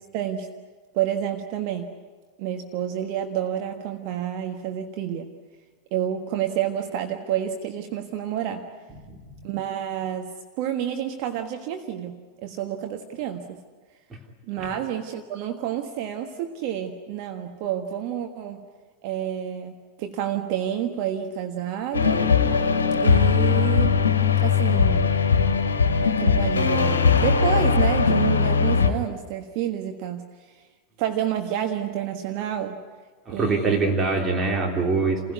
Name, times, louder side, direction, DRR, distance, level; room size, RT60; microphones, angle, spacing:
voice 1, 0.1-0.5 0.9-1.9 2.4-5.3 5.9-8.7 9.4-13.6 14.5-18.7 19.0-19.7 20.0-22.3 22.9-24.0 24.4-25.2 26.2-30.3 31.0-32.8 33.3-33.9 35.2-35.3, right 10 dB, 45° right, 5 dB, 1.4 m, -29 dB
voice 2, 9.1-9.5 14.1-14.2 14.6-14.7 33.2-35.3, right 3 dB, 20° right, 1 dB, 3.3 m, -24 dB
sound 1, 21.9-28.9, left 5 dB, 70° left, 1.6 m, -20 dB
29.0 x 16.0 x 9.7 m, 1.4 s
figure-of-eight pair, 90°, 0 cm